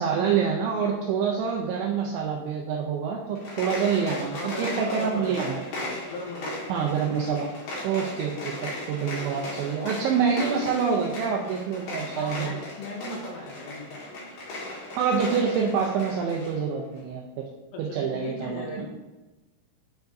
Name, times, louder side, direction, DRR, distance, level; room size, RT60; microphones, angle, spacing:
voice 1, 0.0-5.6 6.7-7.5 7.8-12.5 15.0-17.2 17.8-18.6, right 6 dB, 85° right, 0 dB, 2.6 m, -26 dB
sound 1, 3.3-16.6, left 1 dB, 60° left, 2.3 m, -37 dB
voice 2, 4.3-5.4 6.0-6.9 12.1-14.2 17.7-18.9, left 2 dB, 90° left, -1 dB, 3.7 m, -37 dB
9.1 x 4.6 x 2.6 m, 1.2 s
omnidirectional pair, 5.9 m